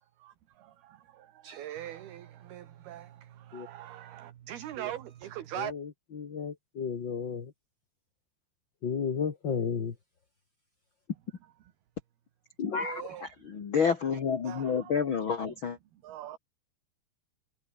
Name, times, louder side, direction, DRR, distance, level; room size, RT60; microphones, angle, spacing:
voice 1, 1.5-1.9 4.5-5.0 5.5-5.7 12.8-13.1 14.5-14.6 16.2-16.4, right 12 dB, 65° right, 3.4 m, -37 dB
voice 2, 5.5-7.5 8.8-9.9 12.6-13.2, left 6 dB, 45° left, 1.5 m, -33 dB
voice 3, 13.5-15.8, left 6 dB, 60° left, 1.3 m, -28 dB
omnidirectional pair, 5.2 m